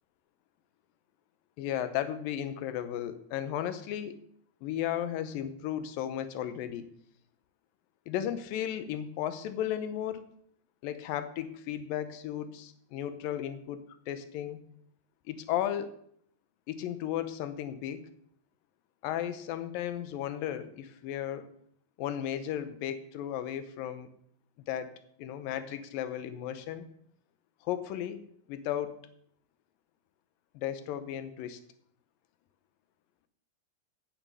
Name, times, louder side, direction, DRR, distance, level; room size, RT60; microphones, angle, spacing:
voice 1, 1.6-4.2 4.6-6.9 8.1-10.2 10.8-14.6 15.3-16.0 16.7-18.1 19.0-21.5 22.0-24.1 24.7-26.9 27.6-28.2 28.5-29.0 30.5-31.6, left 10 dB, 75° left, 11 dB, 2.3 m, -35 dB
9.0 x 8.8 x 5.4 m, 0.66 s
omnidirectional pair, 4.5 m